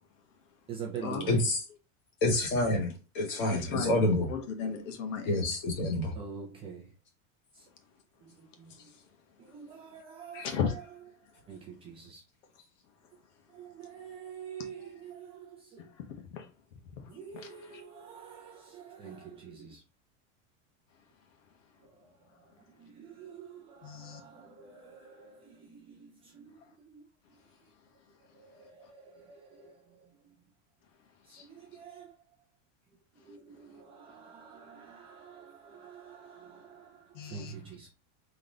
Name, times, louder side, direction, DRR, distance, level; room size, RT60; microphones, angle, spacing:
voice 1, 0.7-1.5 6.1-6.9 7.5-7.7 8.2-8.9 9.4-10.8 11.5-12.2 13.5-15.9 17.1-19.8 21.8-22.1 22.4-26.6 26.8-27.1 28.2-30.3 31.3-32.1 33.1-37.9, right 6 dB, 15° right, 0.5 m, -46 dB
voice 2, 1.3-1.6 2.2-4.2 5.3-6.1, left 1 dB, 40° left, 1.8 m, -28 dB
voice 3, 3.5-4.0 4.3-5.5 5.8-5.9 8.8-8.9 10.3-10.9 15.8-16.5 16.9-17.0 17.3-17.5 23.8-24.2 31.3-31.5 37.1-37.5, left 6 dB, 75° left, 1.3 m, -36 dB
4.0 x 3.3 x 3.8 m
supercardioid pair, 175°, 38 cm